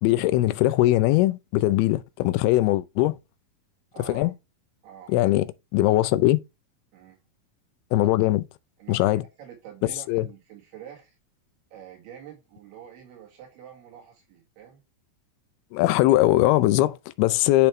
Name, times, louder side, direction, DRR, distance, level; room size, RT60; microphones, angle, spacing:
voice 1, 0.0-3.2 4.1-4.3 5.1-5.5 5.7-6.4 7.9-8.5 8.9-9.2 10.1-10.3 15.7-17.7, left 16 dB, 85° left, 2.5 m, -21 dB
voice 2, 3.9-4.3 4.8-5.2 6.9-7.2 8.8-9.0 9.4-11.2 11.7-14.8, right 9 dB, 80° right, 3.8 m, -46 dB
10.0 x 3.5 x 3.2 m
omnidirectional pair, 4.5 m